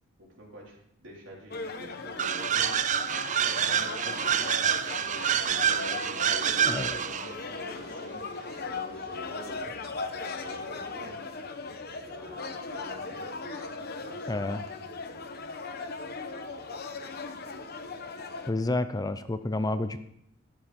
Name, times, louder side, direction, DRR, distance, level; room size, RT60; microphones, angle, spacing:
voice 1, 0.2-5.1 5.3-11.8 12.0-14.5, equal, 75° right, -3 dB, 3.9 m, -47 dB
sound 1, 1.5-18.5, left 3 dB, 55° left, 1.0 m, -38 dB
sound 2, 2.2-7.3, right 8 dB, 40° right, 0.5 m, -27 dB
voice 2, 6.7-7.0 14.3-14.6 18.5-20.0, left 2 dB, 20° left, 11 dB, 0.5 m, -30 dB
12.0 x 9.9 x 4.3 m, 0.75 s
head